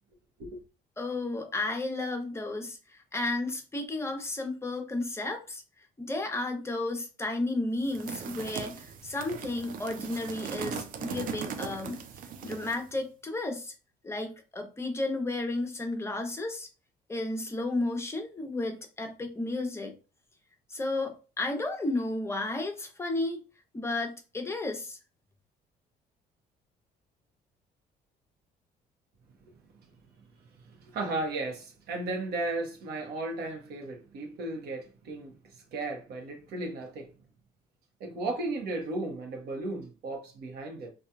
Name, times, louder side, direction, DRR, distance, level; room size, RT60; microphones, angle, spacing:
voice 1, 1.0-5.6 6.0-12.0 12.4-13.7 14.0-16.7 17.1-19.9 20.7-23.5 23.7-25.0, left 2 dB, 15° left, 0.6 m, -33 dB
sound 1, 7.8-12.9, right 6 dB, 55° right, 0.4 m, -39 dB
voice 2, 30.7-35.3 35.7-37.1 38.0-40.9, right 2 dB, 70° right, 0.9 m, -35 dB
2.8 x 2.3 x 2.3 m
cardioid pair, 110°, 17 cm